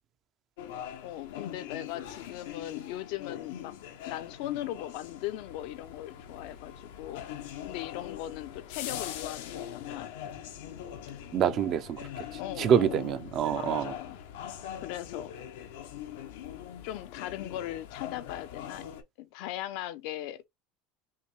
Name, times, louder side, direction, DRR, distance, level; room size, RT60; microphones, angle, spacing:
sound 1, 0.6-19.0, left 10 dB, 85° left, 0.9 m, -42 dB
voice 1, 1.0-3.7 4.1-7.2 7.6-10.1 12.4-13.1 13.5-14.2 14.8-15.3 16.8-18.9 19.2-20.5, left 14 dB, 65° left, 0.6 m, -39 dB
voice 2, 11.3-12.0 12.6-13.9, right 9 dB, 40° right, 0.6 m, -26 dB
5.6 x 2.2 x 3.1 m
supercardioid pair, 145°, 0 cm